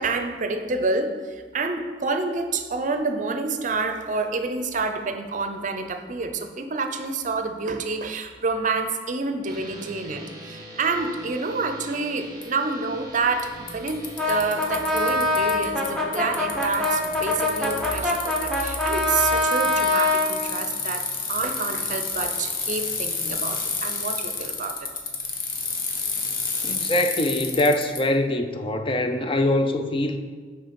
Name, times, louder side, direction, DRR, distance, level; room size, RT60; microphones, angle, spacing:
voice 1, 0.0-24.9, right 3 dB, 45° right, 7 dB, 0.6 m, -28 dB
sound 1, 9.4-19.4, left 1 dB, 20° right, 0.9 m, -43 dB
Bicycle, 12.4-12.5 13.4-13.5 13.7-15.9 16.1-28.0, left 5 dB, 50° left, 0.9 m, -30 dB
Brass instrument, 14.2-20.3, left 2 dB, 5° left, 1.0 m, -24 dB
voice 2, 26.6-30.2, left 1 dB, 30° left, 7 dB, 0.5 m, -23 dB
6.4 x 4.6 x 5.2 m, 1.5 s
head